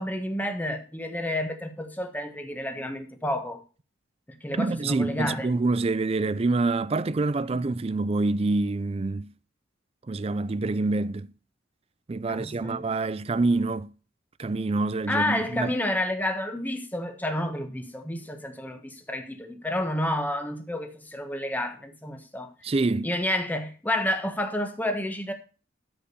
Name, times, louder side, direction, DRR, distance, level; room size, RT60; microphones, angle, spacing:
voice 1, 0.0-3.6 4.3-5.5 7.5-7.6 12.3-12.8 15.1-22.5 23.0-25.3, left 1 dB, 10° left, 1.3 m, -30 dB
voice 2, 4.6-9.3 10.1-11.3 12.1-13.9 14.4-15.7 22.6-23.1, right 3 dB, 30° right, 0.4 m, -26 dB
13.5 x 5.0 x 6.8 m
head